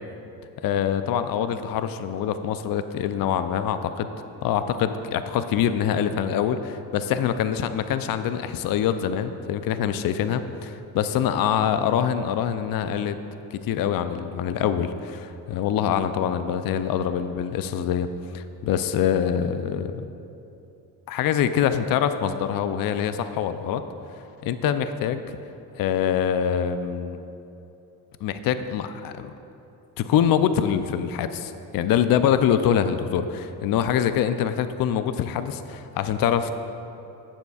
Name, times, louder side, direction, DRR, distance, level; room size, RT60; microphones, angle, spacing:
voice 1, 0.6-4.1 4.4-13.2 13.5-20.1 21.1-23.8 24.4-25.2 25.8-27.2 28.2-29.3 30.0-36.6, left 9 dB, 55° left, 10 dB, 0.5 m, -24 dB
15.0 x 7.0 x 2.4 m, 2.8 s
supercardioid pair, 70°, 42 cm